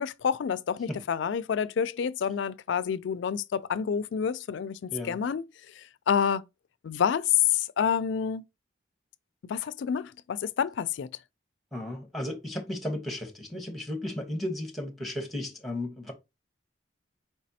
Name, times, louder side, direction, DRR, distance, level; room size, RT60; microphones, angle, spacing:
voice 1, 0.0-5.4 6.1-6.4 6.8-8.4 9.4-11.1, left 8 dB, 65° left, 0.3 m, -28 dB
voice 2, 11.7-16.1, left 1 dB, ahead, 1.0 m, -34 dB
4.5 x 4.1 x 2.7 m
head